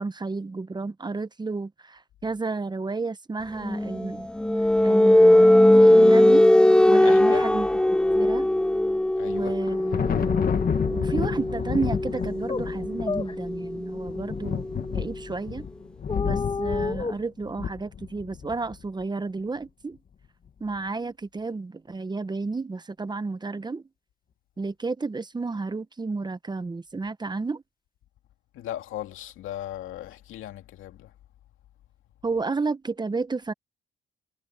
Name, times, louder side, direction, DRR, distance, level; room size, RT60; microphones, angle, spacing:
voice 1, 0.0-4.3 4.8-5.5 5.8-6.5 6.9-8.5 9.2-10.4 10.9-14.7 14.9-15.7 16.2-20.0 20.6-23.9 24.6-27.6 32.2-33.5, right 3 dB, 20° right, 1.0 m, -31 dB
sound 1, 3.6-15.1, left 1 dB, 5° left, 0.5 m, -20 dB
voice 2, 7.0-7.5 9.2-9.6 28.5-31.1, left 12 dB, 85° left, 2.6 m, -37 dB
Thunder, 9.3-18.7, left 7 dB, 50° left, 1.9 m, -30 dB
sound 2, 12.2-12.3 12.5-12.7 13.1-13.4 16.1-17.2, left 4 dB, 25° left, 1.7 m, -29 dB
cardioid pair, 90°, 20 cm